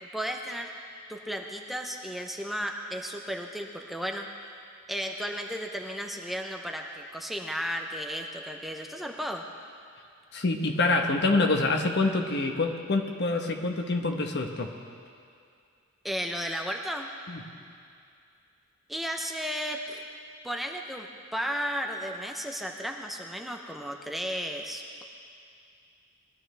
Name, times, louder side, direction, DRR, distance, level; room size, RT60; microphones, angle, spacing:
voice 1, 0.1-0.7 1.1-4.3 4.9-9.4 16.0-17.1 18.9-20.0 20.4-21.1 21.3-25.0, equal, ahead, 2 dB, 0.6 m, -34 dB
voice 2, 10.3-14.7 17.3-17.4, left 3 dB, 55° left, 3 dB, 1.1 m, -26 dB
20.5 x 12.5 x 3.3 m, 2.4 s
head